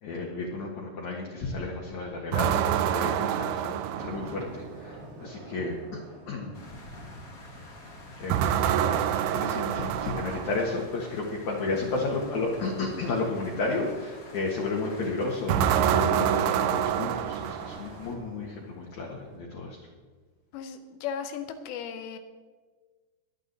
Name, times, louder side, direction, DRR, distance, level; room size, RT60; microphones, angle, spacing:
voice 1, 0.0-6.0 6.3-6.5 8.2-8.6 9.0-19.8, left 3 dB, 55° left, -2 dB, 2.4 m, -32 dB
sound 1, 2.3-4.7 8.3-10.8 15.5-18.1, right 10 dB, 80° right, 2.5 m, -26 dB
sound 2, 3.8-8.1 8.4-8.6 9.0-19.4, right 1 dB, 50° right, 3.4 m, -49 dB
sound 3, 6.5-18.1, left 1 dB, 40° left, 1.3 m, -47 dB
voice 2, 20.5-22.2, left 7 dB, 85° left, 8 dB, 3.1 m, -36 dB
22.5 x 8.7 x 4.1 m, 1.4 s
omnidirectional pair, 4.9 m